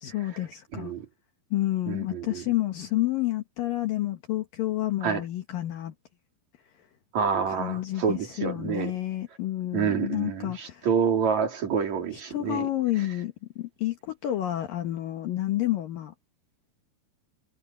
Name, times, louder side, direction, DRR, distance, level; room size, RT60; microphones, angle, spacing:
voice 1, 0.0-0.9 1.5-5.9 7.5-10.9 12.3-16.1, left 14 dB, 65° left, 2.9 m, -29 dB
voice 2, 0.7-1.1 1.9-2.4 5.0-5.2 7.1-8.9 9.7-12.7 13.0-13.1, right 6 dB, 50° right, 4.4 m, -28 dB
omnidirectional pair, 4.5 m